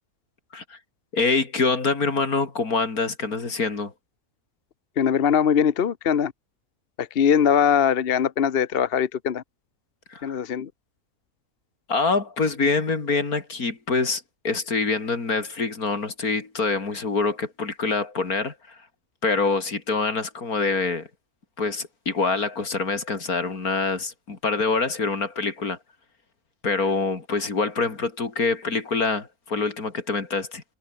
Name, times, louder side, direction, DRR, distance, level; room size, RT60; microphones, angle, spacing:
voice 1, 1.1-3.9 10.1-10.4 11.9-18.8 19.2-21.1 21.6-25.8 26.6-30.6, left 4 dB, 80° left, 3.6 m, -25 dB
voice 2, 5.0-6.3 7.0-9.4 10.2-10.7, left 8 dB, 45° left, 1.0 m, -21 dB
omnidirectional pair, 1.5 m